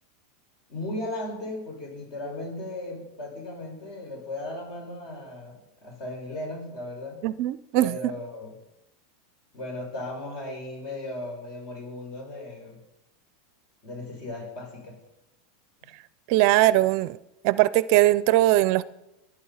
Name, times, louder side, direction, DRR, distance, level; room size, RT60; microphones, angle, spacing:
voice 1, 0.7-7.2 7.7-8.6 9.5-12.8 13.8-15.0 15.8-15.9, left 1 dB, 45° left, 6.1 m, -36 dB
voice 2, 7.2-8.0 16.3-17.2 17.4-18.8, right 16 dB, 50° right, 0.6 m, -20 dB
22.0 x 9.9 x 5.8 m
supercardioid pair, 150°, 0 cm